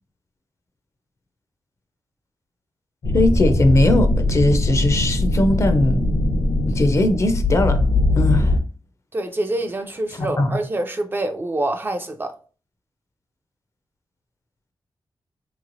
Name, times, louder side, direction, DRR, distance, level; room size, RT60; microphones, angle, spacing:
sound 1, 3.0-8.6, left 2 dB, 75° left, 0.8 m, -20 dB
voice 1, 3.1-6.1 6.6-7.8 8.2-8.5 10.4-10.6, left 1 dB, 40° left, 0.4 m, -19 dB
voice 2, 9.1-12.3, right 1 dB, 25° right, 0.4 m, -26 dB
3.2 x 3.0 x 2.5 m
wide cardioid pair, 120°, 8 cm